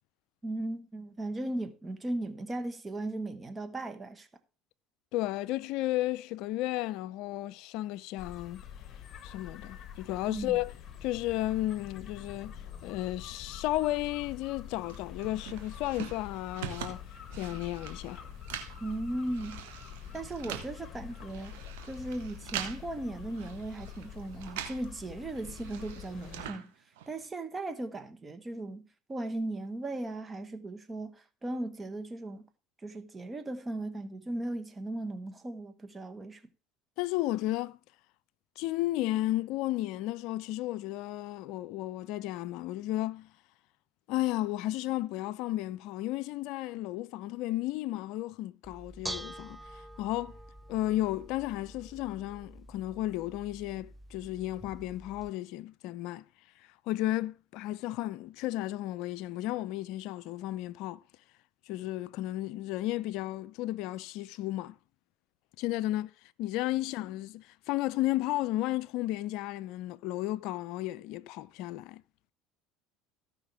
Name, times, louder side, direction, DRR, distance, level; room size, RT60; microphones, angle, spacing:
voice 1, 0.4-4.3 10.3-10.6 18.8-19.6 20.1-26.7 27.1-32.5 32.8-36.4, right 2 dB, 20° right, 1.3 m, -37 dB
voice 2, 5.1-8.6 9.2-10.7 11.0-12.6 12.8-17.0 17.3-18.2 37.0-37.8 38.6-43.3 44.1-50.4 50.7-56.3 56.9-61.0 61.7-64.8 65.6-66.1 66.4-72.0, left 16 dB, 65° left, 0.5 m, -33 dB
sound 1, 8.2-26.5, left 8 dB, 40° left, 1.5 m, -46 dB
sound 2, 14.9-24.9 25.2-27.3, right 10 dB, 80° right, 1.5 m, -44 dB
Bell / Dishes pots and pans, 48.6-55.3, right 1 dB, 5° right, 0.4 m, -46 dB
16.0 x 5.7 x 3.4 m
hypercardioid pair, 80°, 0 cm